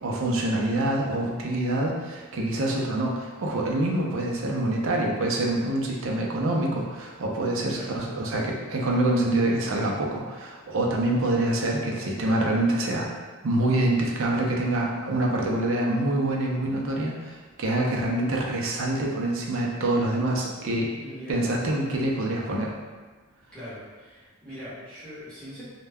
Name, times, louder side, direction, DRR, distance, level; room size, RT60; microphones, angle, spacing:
voice 1, 0.0-13.1 13.4-20.9 21.3-22.7, right 1 dB, 65° right, -1 dB, 0.5 m, -26 dB
voice 2, 21.0-21.4 23.5-25.6, equal, 5° left, -12 dB, 0.9 m, -41 dB
2.2 x 2.2 x 3.3 m, 1.4 s
head